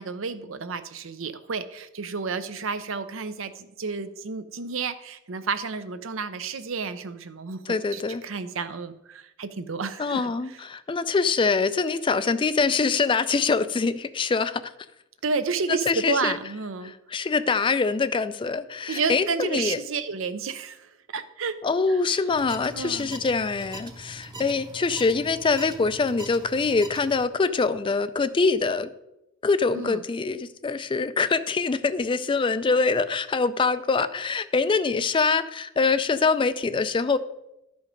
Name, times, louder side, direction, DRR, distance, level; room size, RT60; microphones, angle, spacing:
voice 1, 0.0-7.6 7.9-10.6 15.2-16.9 18.9-21.5 21.9-22.0 22.7-23.1 29.7-30.0, right 5 dB, 70° right, 11 dB, 0.6 m, -31 dB
voice 2, 7.7-8.2 10.0-14.6 15.7-16.4 16.8-19.8 21.6-28.9 29.4-37.2, left 4 dB, 25° left, 13 dB, 0.3 m, -24 dB
sound 1, 22.3-27.3, right 1 dB, 20° right, 0.8 m, -42 dB
12.0 x 5.2 x 5.1 m, 0.88 s
head